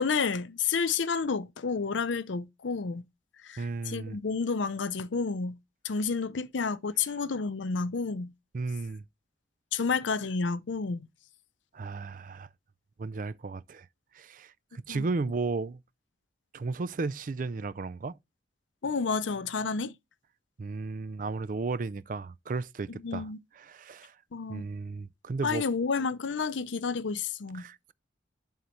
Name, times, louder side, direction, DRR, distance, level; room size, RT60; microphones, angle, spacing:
voice 1, 0.0-3.0 3.4-5.6 5.8-8.3 9.7-11.1 14.9-15.0 18.8-19.9 22.9-23.4 24.3-24.6 25.4-27.7, left 5 dB, 80° left, 0.6 m, -30 dB
voice 2, 3.6-4.2 8.5-9.0 11.7-12.5 13.0-13.9 14.1-15.8 16.5-18.2 20.6-23.3 23.6-24.1 24.5-25.6 27.5-27.9, right 3 dB, 45° right, 0.4 m, -34 dB
11.0 x 3.9 x 3.1 m
head